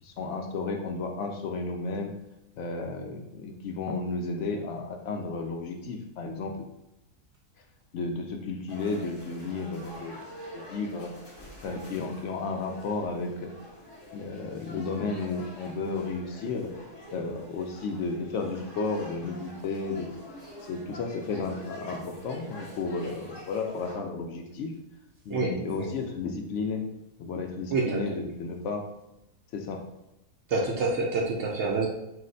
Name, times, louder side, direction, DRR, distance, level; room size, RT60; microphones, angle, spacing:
voice 1, 0.0-2.1 2.6-6.6 7.9-10.2 10.5-11.1 11.6-13.5 14.1-16.7 17.1-20.1 20.7-24.7 25.2-26.9 27.2-28.8 29.5-29.8, left 3 dB, 70° left, 3 dB, 0.7 m, -33 dB
sound 1, 8.7-24.0, left 1 dB, 30° left, 0.5 m, -46 dB
voice 2, 25.3-25.9 27.7-28.0 30.5-31.9, right 3 dB, 65° right, 0 dB, 0.7 m, -27 dB
4.8 x 2.1 x 3.8 m, 0.90 s
omnidirectional pair, 1.6 m